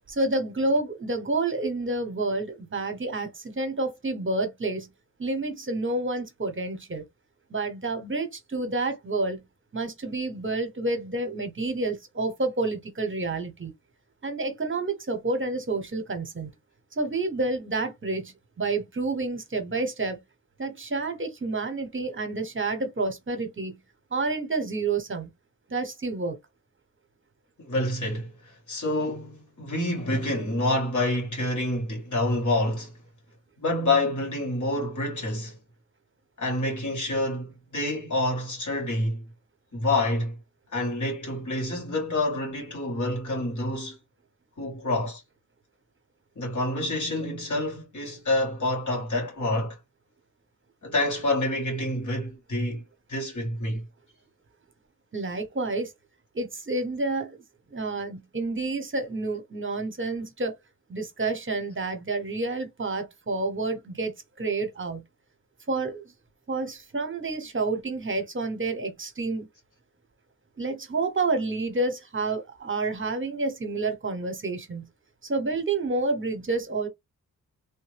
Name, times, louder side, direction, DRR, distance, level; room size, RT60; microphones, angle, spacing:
voice 1, 0.1-4.9 5.2-7.0 7.5-9.4 9.7-13.7 14.2-16.5 17.0-20.2 20.6-23.8 24.1-25.3 25.7-26.4 55.1-55.9 56.3-57.4 57.7-60.6 60.9-64.1 64.4-65.0 65.7-66.0 66.5-69.5 70.6-74.8 75.2-76.9, right 3 dB, 35° right, 1.0 m, -29 dB
voice 2, 27.6-33.0 33.6-35.6 36.4-39.2 39.7-40.4 40.7-44.0 44.6-45.2 46.4-49.8 50.8-52.8 53.1-53.8, left 1 dB, 60° left, 2.1 m, -27 dB
3.4 x 2.1 x 3.3 m
cardioid pair, 65°, 33 cm